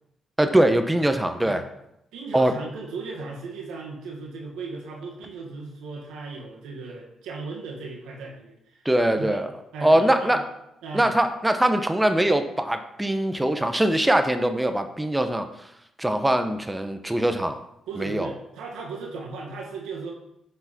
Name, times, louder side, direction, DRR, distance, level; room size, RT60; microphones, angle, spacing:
voice 1, 0.4-1.6 2.3-2.5 8.8-9.5 9.8-10.4 10.9-15.4 16.0-17.6 18.0-18.3, right 1 dB, 10° right, 7 dB, 1.1 m, -22 dB
voice 2, 2.1-9.4 9.7-10.3 10.8-11.2 17.9-20.1, right 4 dB, 80° right, -1 dB, 2.0 m, -36 dB
7.9 x 6.7 x 4.4 m, 0.81 s
hypercardioid pair, 50°, 0 cm